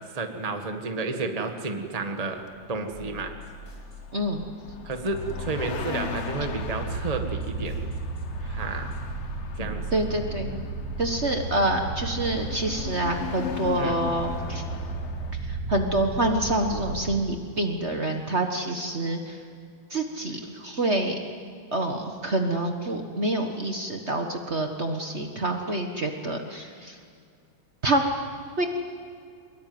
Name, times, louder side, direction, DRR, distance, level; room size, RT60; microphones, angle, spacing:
voice 1, 0.1-2.4 2.7-3.3 4.8-7.8 8.4-8.9 9.6-10.0 10.5-10.6 13.8-14.0, right 3 dB, 20° right, 5 dB, 1.5 m, -31 dB
sound 1, 2.4-15.3, left 8 dB, 45° left, 0.9 m, -40 dB
sound 2, 2.9-9.1, left 2 dB, 75° left, 4.2 m, -45 dB
voice 2, 4.1-4.4 9.9-10.5 11.0-14.6 15.3-19.4 19.9-21.2 21.7-27.0 27.8-28.1 28.6-28.7, right 1 dB, 35° right, 4 dB, 1.7 m, -27 dB
sound 3, 5.1-17.2, right 3 dB, 85° right, 2.5 m, -34 dB
23.5 x 21.5 x 9.5 m, 2.2 s
omnidirectional pair, 2.1 m